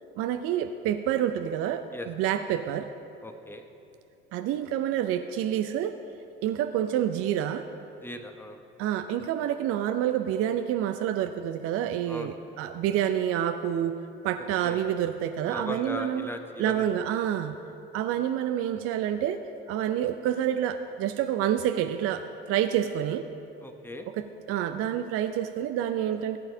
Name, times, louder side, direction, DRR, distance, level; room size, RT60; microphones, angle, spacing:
voice 1, 0.2-2.9 4.3-6.0 6.4-7.6 8.8-14.0 14.2-16.3 16.6-17.6 17.9-19.4 19.7-23.2 24.2-26.4, right 10 dB, 50° right, 8 dB, 0.5 m, -28 dB
voice 2, 3.2-3.7 8.0-8.6 12.1-12.4 14.6-14.9 15.4-16.9 23.6-24.1, left 1 dB, 5° left, 5 dB, 1.0 m, -38 dB
17.5 x 8.7 x 2.8 m, 2.7 s
hypercardioid pair, 65°, 31 cm